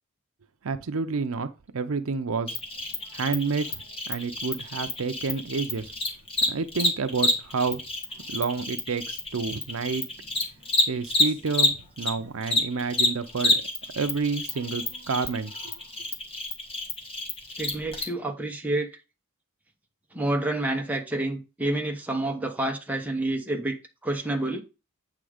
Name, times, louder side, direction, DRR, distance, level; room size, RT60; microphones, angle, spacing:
voice 1, 0.6-1.5 1.7-2.6 3.1-3.7 4.1-5.9 6.5-7.8 8.3-10.0 10.9-13.6 14.0-15.7, right 4 dB, 70° right, 0.6 m, -29 dB
Cricket, 2.5-12.1 12.4-18.0, left 2 dB, 25° left, 1.6 m, -28 dB
voice 2, 17.6-18.9 20.1-24.6, right 1 dB, 5° right, 1.0 m, -28 dB
8.6 x 3.8 x 4.9 m
head